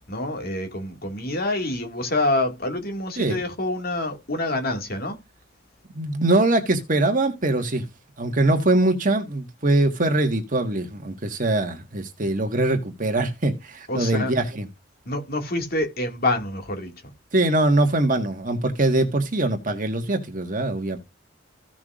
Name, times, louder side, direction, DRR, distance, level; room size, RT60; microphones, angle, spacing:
voice 1, 0.1-5.2 13.9-14.3 15.1-16.9, left 2 dB, 50° left, 2.1 m, -26 dB
voice 2, 5.9-7.8 8.2-14.7 17.3-21.0, right 2 dB, 45° right, 1.6 m, -22 dB
15.5 x 6.0 x 2.5 m
head